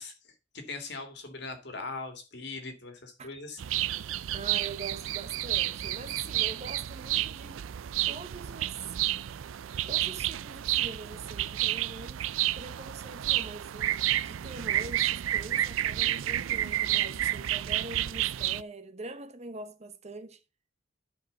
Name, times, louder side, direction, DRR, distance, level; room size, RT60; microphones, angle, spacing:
voice 1, 0.0-3.6, left 3 dB, 60° left, 2.1 m, -40 dB
sound 1, 3.6-18.6, right 13 dB, 90° right, 0.4 m, -30 dB
voice 2, 4.3-7.6 8.1-9.0 9.9-12.3 12.5-20.4, right 3 dB, 35° right, 0.8 m, -43 dB
12.0 x 5.3 x 3.9 m
head